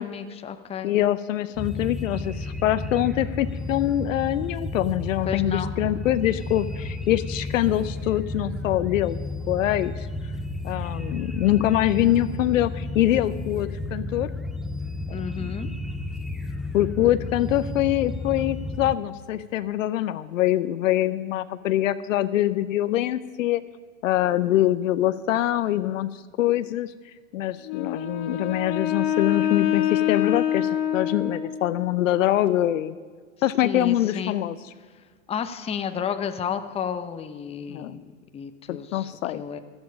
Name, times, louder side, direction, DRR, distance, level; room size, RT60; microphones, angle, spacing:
voice 1, 0.0-0.9 5.3-5.7 15.1-15.7 33.6-34.4 35.3-39.6, left 8 dB, 15° left, 8 dB, 0.7 m, -32 dB
voice 2, 0.8-9.2 9.5-10.1 10.6-14.3 15.1-15.7 16.7-23.6 24.0-26.1 26.4-26.9 27.3-32.9 33.4-34.6 37.7-38.0 38.7-39.4, left 13 dB, 70° left, 14 dB, 0.7 m, -24 dB
sound 1, 1.6-19.0, left 2 dB, ahead, 0.4 m, -32 dB
Wind instrument woodwind instrument, 27.6-31.9, left 10 dB, 45° left, 1.3 m, -26 dB
14.5 x 13.5 x 5.2 m, 1.5 s
hypercardioid pair, 110°, 41 cm